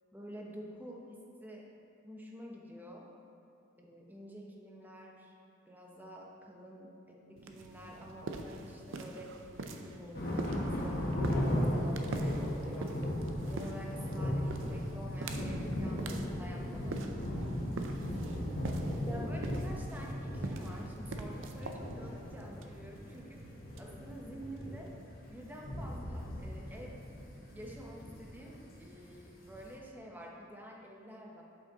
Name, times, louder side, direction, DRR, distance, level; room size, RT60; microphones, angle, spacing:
voice 1, 0.1-1.7 2.0-3.1 3.8-5.4 5.7-9.4 9.7-13.1 13.5-17.1 19.1-23.4 23.8-24.9 25.3-27.0 27.5-31.4, equal, 10° right, -1 dB, 0.8 m, -49 dB
sound 1, 7.4-24.9, right 2 dB, 80° right, 0.5 m, -44 dB
sound 2, 10.1-29.7, equal, 50° left, 1.3 m, -37 dB
7.6 x 5.7 x 3.9 m, 2.7 s
head